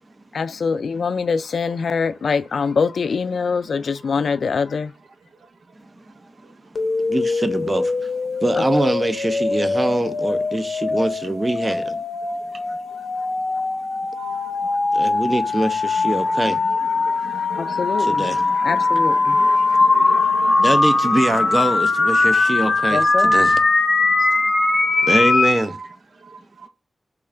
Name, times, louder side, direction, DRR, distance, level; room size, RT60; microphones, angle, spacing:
voice 1, 0.3-4.9 8.6-8.7 17.6-18.3 18.6-19.4 22.9-23.4, left 5 dB, 80° left, 0.3 m, -24 dB
sound 1, 6.8-25.6, left 3 dB, 55° left, 0.7 m, -20 dB
voice 2, 7.0-8.1 8.4-12.0 14.9-16.6 18.0-18.4 20.5-23.6 24.2-24.3 25.0-25.8, right 1 dB, 25° right, 0.5 m, -23 dB
voice 3, 17.2-18.0 18.7-18.8 19.1-20.6 24.9-25.1, right 3 dB, 80° right, 0.7 m, -36 dB
3.7 x 2.3 x 3.3 m
wide cardioid pair, 105°, 0 cm